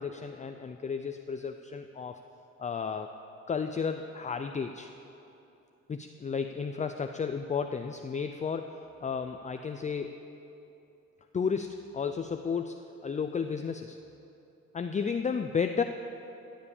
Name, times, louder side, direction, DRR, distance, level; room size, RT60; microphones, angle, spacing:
voice 1, 0.0-2.2 2.6-3.1 3.5-4.9 5.9-10.2 11.3-14.0 14.7-15.8, left 6 dB, 25° left, 7 dB, 0.5 m, -33 dB
14.5 x 7.4 x 7.1 m, 2.9 s
cardioid pair, 90°, 30 cm